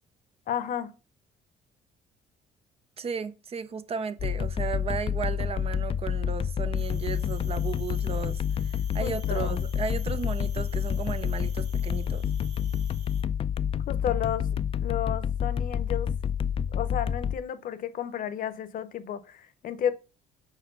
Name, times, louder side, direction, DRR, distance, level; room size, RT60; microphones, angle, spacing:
voice 1, 0.5-0.9 9.0-9.6 13.9-14.5 14.8-16.1 16.7-19.9, left 9 dB, 55° left, 0.8 m, -32 dB
voice 2, 3.0-12.2, right 6 dB, 35° right, 0.5 m, -35 dB
sound 1, 4.2-17.4, left 8 dB, 35° left, 0.4 m, -29 dB
sound 2, 6.8-13.2, right 6 dB, 85° right, 1.7 m, -50 dB
4.6 x 4.5 x 5.4 m
cardioid pair, 110°, 17 cm